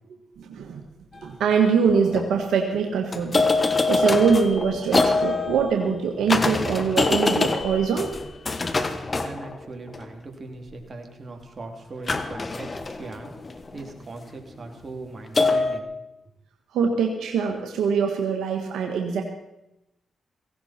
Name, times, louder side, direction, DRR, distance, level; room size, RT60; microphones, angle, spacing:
voice 1, 0.4-0.8 1.2-8.1 16.7-19.2, right 6 dB, 85° right, 3 dB, 1.5 m, -23 dB
sound 1, 1.2-1.3 1.9-2.3 3.1-10.1 12.1-14.0 15.4-15.8, left 3 dB, 35° left, 1.4 m, -25 dB
voice 2, 9.2-15.9, right 3 dB, 45° right, 3 dB, 3.1 m, -40 dB
17.0 x 16.5 x 4.4 m, 0.90 s
cardioid pair, 60°, 0 cm